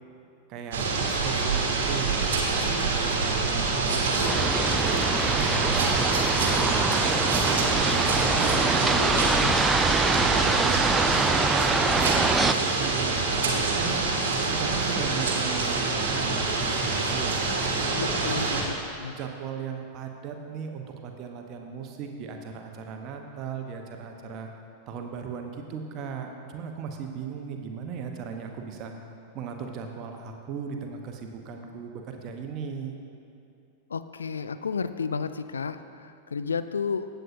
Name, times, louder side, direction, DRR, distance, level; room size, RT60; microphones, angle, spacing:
voice 1, 0.5-2.3 2.6-7.8 8.3-9.6 10.2-14.1 14.5-17.9 18.3-18.7 19.1-24.5 24.9-28.9 29.3-32.9, right 6 dB, 40° right, 3 dB, 1.0 m, -37 dB
sound 1, 0.7-18.6, right 3 dB, 60° right, 1.4 m, -26 dB
sound 2, 4.3-12.5, right 3 dB, 10° right, 0.4 m, -25 dB
voice 2, 9.0-9.5 17.9-18.4 19.0-19.1 33.9-37.1, left 5 dB, 70° left, 12 dB, 0.3 m, -32 dB
15.5 x 7.9 x 2.7 m, 2.8 s
figure-of-eight pair, 90°, 0 cm